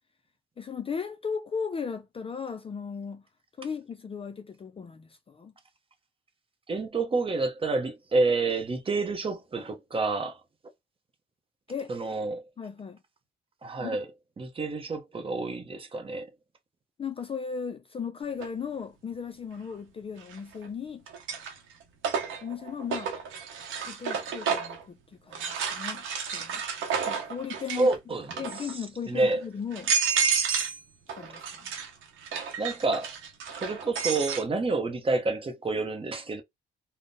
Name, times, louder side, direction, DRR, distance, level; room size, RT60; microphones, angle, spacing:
voice 1, 0.6-3.2 3.6-5.5 11.7-11.9 12.6-13.0 13.8-14.0 17.0-21.0 22.4-23.1 23.8-26.0 26.3-26.6 27.1-27.9 28.4-29.9 31.1-31.7, left 6 dB, 30° left, 0.4 m, -36 dB
voice 2, 6.7-10.4 11.9-12.4 13.6-14.1 14.4-16.3 27.8-28.8 29.1-29.4 32.6-33.1 33.6-36.4, right 3 dB, 25° right, 0.7 m, -28 dB
sound 1, 18.4-18.5 20.2-20.7 21.1-24.8 25.3-27.9 28.2-28.7 29.3-29.4 29.7-30.8 31.1-34.4, right 6 dB, 80° right, 0.7 m, -31 dB
3.6 x 2.0 x 2.6 m
cardioid pair, 90°, 20 cm